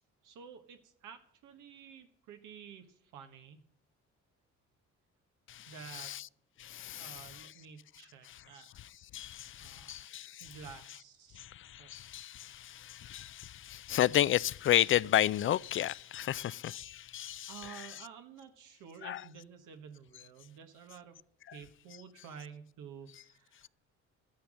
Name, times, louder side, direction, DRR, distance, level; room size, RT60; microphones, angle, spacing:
voice 1, 0.2-2.8 3.1-3.6 5.7-6.1 7.0-8.7 9.6-10.0 10.4-11.5 11.8-11.9 17.5-21.2 21.5-23.7, right 7 dB, 90° right, 1.4 m, -51 dB
voice 2, 5.5-6.3 6.6-7.5 8.2-8.4 8.8-11.0 11.4-18.1 19.0-19.2 21.5-21.6 23.1-23.2, left 12 dB, 45° left, 0.4 m, -33 dB
12.0 x 10.0 x 6.3 m
cardioid pair, 90°, 30 cm